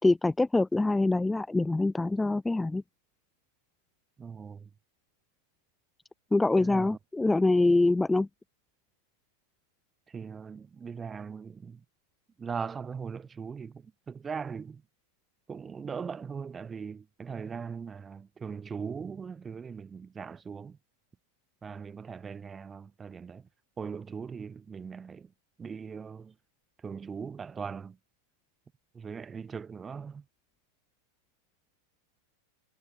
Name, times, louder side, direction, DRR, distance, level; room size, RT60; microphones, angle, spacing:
voice 1, 0.0-2.8 6.3-8.3, left 2 dB, 5° left, 1.6 m, -24 dB
voice 2, 4.2-4.7 6.6-7.0 10.1-11.8 12.4-14.8 15.5-20.8 21.6-23.4 23.8-25.3 25.6-26.3 26.8-28.0 28.9-30.2, right 6 dB, 20° right, 4.3 m, -40 dB
figure-of-eight pair, 90°, 0 cm